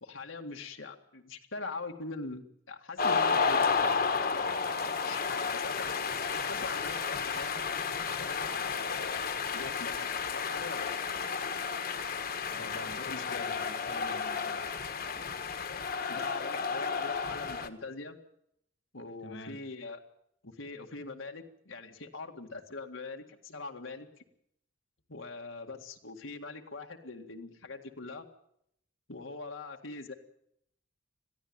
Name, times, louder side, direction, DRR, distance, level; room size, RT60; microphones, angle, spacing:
voice 1, 0.0-4.3 5.0-6.0 6.3-7.5 8.2-9.2 9.5-10.0 10.3-10.9 12.6-13.5 16.1-18.2 18.9-20.0 20.4-24.1 25.1-28.3 29.1-30.1, left 3 dB, 90° left, 3 dB, 2.0 m, -42 dB
sound 1, 3.0-17.7, left 5 dB, 50° left, 1.4 m, -32 dB
voice 2, 12.5-14.7 19.2-19.6, left 1 dB, 65° left, 8 dB, 1.8 m, -47 dB
22.0 x 14.5 x 8.9 m, 0.74 s
head